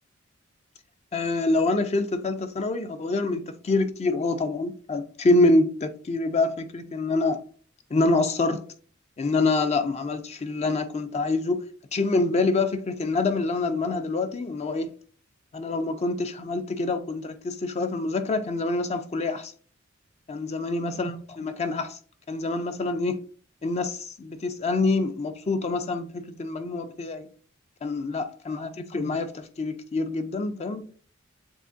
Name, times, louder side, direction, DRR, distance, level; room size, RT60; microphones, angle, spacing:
voice 1, 1.1-7.4 7.9-8.6 9.2-11.6 11.9-14.9 15.5-19.5 20.3-22.0 22.3-23.2 23.6-27.3 27.8-30.9, left 2 dB, 30° left, 0.4 m, -26 dB
7.4 x 2.8 x 2.6 m
head